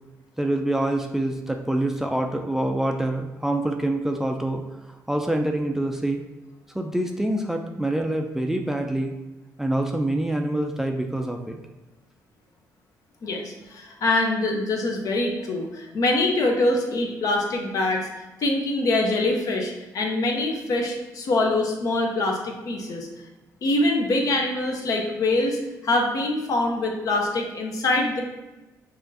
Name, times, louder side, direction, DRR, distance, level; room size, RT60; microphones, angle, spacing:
voice 1, 0.4-6.2 6.7-9.1 9.6-11.6, right 1 dB, 5° right, 3 dB, 0.4 m, -26 dB
voice 2, 13.2-18.1 18.4-23.1 23.6-28.2, left 2 dB, 60° left, 1 dB, 0.8 m, -24 dB
5.7 x 2.5 x 2.7 m, 1.1 s
cardioid pair, 95°, 7 cm